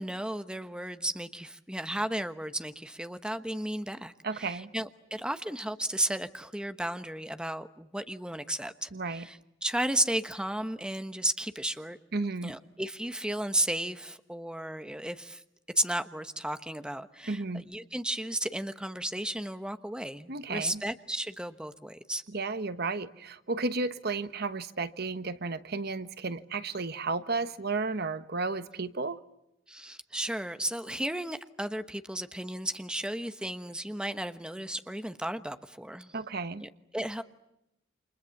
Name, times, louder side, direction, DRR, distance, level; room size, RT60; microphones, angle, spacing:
voice 1, 0.0-12.0 12.4-15.4 15.8-22.2 29.7-36.1 36.6-37.2, right 1 dB, 5° right, 1.1 m, -34 dB
voice 2, 4.2-4.7 8.9-9.3 12.1-12.5 17.3-17.6 20.3-20.8 22.3-29.2 36.1-36.6, right 3 dB, 55° right, 1.2 m, -33 dB
29.5 x 27.0 x 7.2 m
head